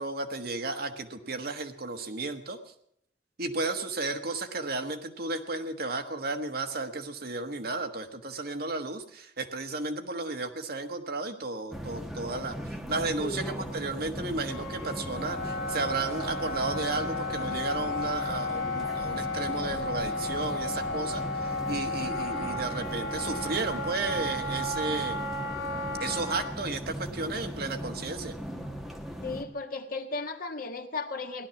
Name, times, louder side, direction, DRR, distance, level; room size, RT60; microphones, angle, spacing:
voice 1, 0.0-2.6 3.4-25.2 26.0-28.3, right 3 dB, 60° right, 6 dB, 1.4 m, -33 dB
sound 1, 11.7-29.4, equal, ahead, 1.4 m, -38 dB
voice 2, 13.2-13.7 29.2-31.5, left 3 dB, 55° left, 6 dB, 1.5 m, -35 dB
Wind instrument woodwind instrument, 14.5-26.5, left 2 dB, 75° left, 2.0 m, -34 dB
17.0 x 12.0 x 7.0 m, 0.71 s
head